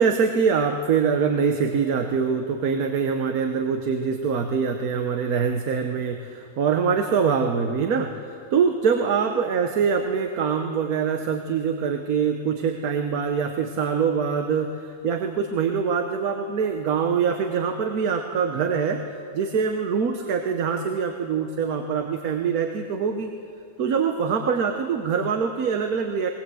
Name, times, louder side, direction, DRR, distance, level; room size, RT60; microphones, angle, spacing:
voice 1, 0.0-19.0 19.3-23.3 23.8-26.3, right 6 dB, 80° right, 5 dB, 1.4 m, -24 dB
19.5 x 19.5 x 7.7 m, 2.5 s
omnidirectional pair, 1.5 m